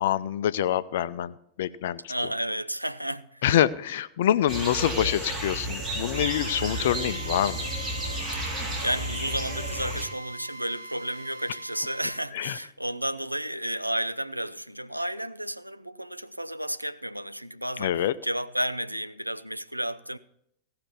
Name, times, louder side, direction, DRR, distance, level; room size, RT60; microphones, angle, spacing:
voice 1, 0.0-2.1 3.4-7.7 12.3-12.6 17.8-18.1, left 11 dB, 55° left, 0.5 m, -26 dB
voice 2, 2.1-3.4 8.5-20.2, right 1 dB, 90° right, 0.4 m, -32 dB
sound 1, 4.5-10.1, right 1 dB, 30° right, 3.7 m, -32 dB
Drill, 6.1-12.1, right 2 dB, 70° right, 0.9 m, -42 dB
16.0 x 5.8 x 7.2 m
figure-of-eight pair, 90°, 0 cm